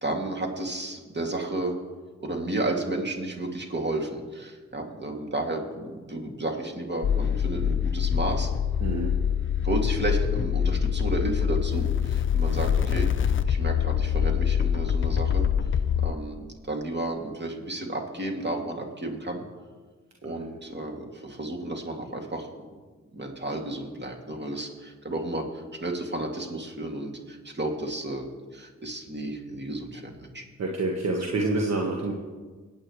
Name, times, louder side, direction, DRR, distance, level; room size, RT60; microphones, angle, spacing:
voice 1, 0.0-1.7 2.2-8.5 9.6-15.5 16.0-19.4 20.2-22.5 23.1-28.3 28.5-30.4, right 2 dB, 35° right, 1 dB, 2.6 m, -32 dB
sound 1, 7.0-16.1, left 8 dB, 45° left, 0.5 m, -25 dB
voice 2, 8.8-9.1 20.3-20.5 30.6-32.1, right 2 dB, 60° right, 0 dB, 1.4 m, -27 dB
25.0 x 8.8 x 3.2 m, 1.4 s
cardioid pair, 50°, 29 cm